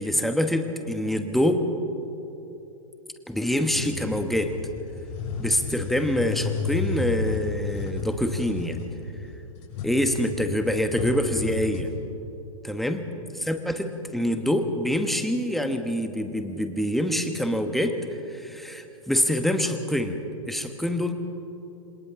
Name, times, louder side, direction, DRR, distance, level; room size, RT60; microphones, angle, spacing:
voice 1, 0.0-1.6 3.3-4.5 5.4-8.8 9.8-11.9 12.6-13.0 13.3-18.0 18.3-21.1, equal, ahead, 7 dB, 1.4 m, -25 dB
sound 1, 3.7-11.9, left 4 dB, 50° left, 6.3 m, -32 dB
27.0 x 27.0 x 3.8 m, 3.0 s
figure-of-eight pair, 105°, 18 cm